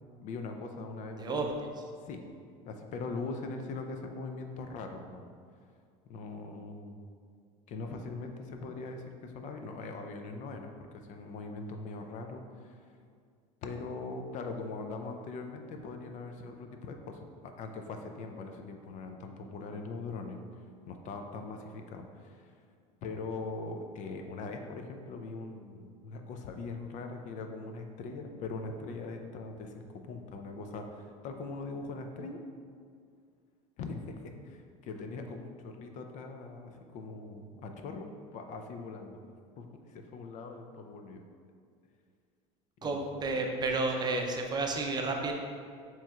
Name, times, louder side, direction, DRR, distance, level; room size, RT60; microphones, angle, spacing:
voice 1, 0.2-1.5 2.0-2.3 2.7-5.3 6.1-7.1 7.7-12.9 13.6-20.4 20.9-22.6 23.0-32.4 33.8-39.2 39.6-41.2 42.8-43.0, left 3 dB, 50° left, 5 dB, 0.5 m, -41 dB
voice 2, 1.2-1.8 42.8-45.3, right 3 dB, 25° right, 2 dB, 0.5 m, -31 dB
7.1 x 3.0 x 2.4 m, 2.2 s
supercardioid pair, 100°, 17 cm